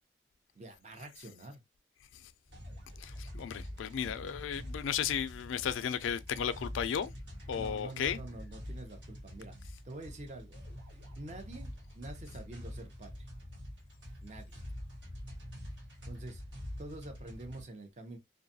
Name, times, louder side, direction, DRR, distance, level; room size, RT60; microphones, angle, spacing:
voice 1, 0.5-1.6 4.0-4.4 7.5-9.6 9.8-10.6 11.2-13.3 14.2-14.6 16.0-16.4 16.8-18.2, right 2 dB, 40° right, 0.6 m, -47 dB
sound 1, 2.5-17.6, equal, 75° right, 1.3 m, -46 dB
voice 2, 3.0-7.1 7.5-8.2, left 8 dB, 90° left, 0.3 m, -34 dB
2.6 x 2.3 x 2.6 m
head